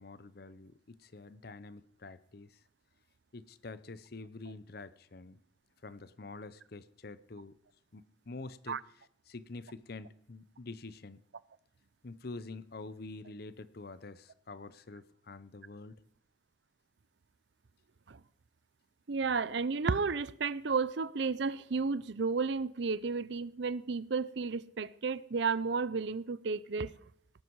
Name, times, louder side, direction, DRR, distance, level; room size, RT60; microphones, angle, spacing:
voice 1, 0.0-2.6 3.3-5.4 5.8-7.6 7.9-11.2 12.0-16.0, left 3 dB, 50° left, 0.7 m, -47 dB
voice 2, 19.1-26.9, right 4 dB, 65° right, 0.6 m, -32 dB
18.0 x 12.5 x 4.7 m
head